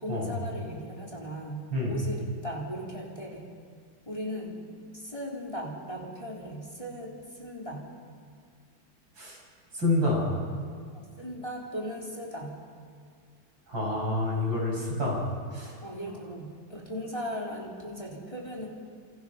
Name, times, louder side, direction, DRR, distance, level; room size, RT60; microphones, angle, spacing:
voice 1, 0.0-3.5 4.1-7.8 10.9-12.6 15.8-18.7, equal, 15° left, -3 dB, 3.9 m, -38 dB
voice 2, 9.7-10.3 13.7-15.2 15.5-15.8, left 2 dB, 85° right, -3 dB, 8.0 m, -28 dB
28.0 x 27.5 x 5.9 m, 2.1 s
omnidirectional pair, 2.0 m